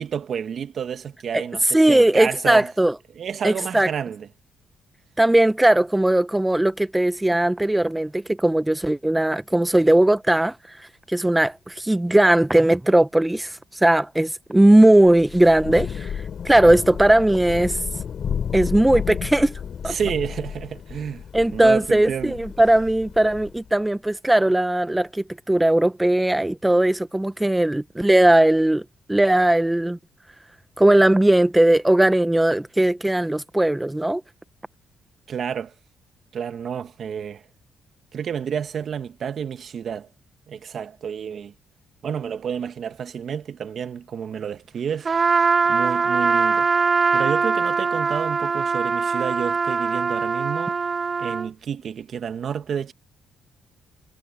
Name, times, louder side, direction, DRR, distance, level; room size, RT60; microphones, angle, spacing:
voice 1, 0.0-2.7 3.2-4.3 19.8-21.2 21.5-22.4 35.3-35.7 36.3-37.4 38.1-40.1 40.5-41.5 42.0-45.1 45.7-46.7 47.1-50.8 51.2-52.9, right 7 dB, 55° right, 1.7 m, -30 dB
voice 2, 1.7-2.9 3.4-3.9 5.2-17.8 18.5-19.5 19.8-19.9 21.3-30.0 30.8-34.2, right 1 dB, 10° right, 0.8 m, -18 dB
Thunder / Rain, 15.1-23.7, left 7 dB, 55° left, 5.4 m, -32 dB
Trumpet, 45.0-51.5, right 5 dB, 35° right, 0.6 m, -22 dB
cardioid pair, 90°, 0 cm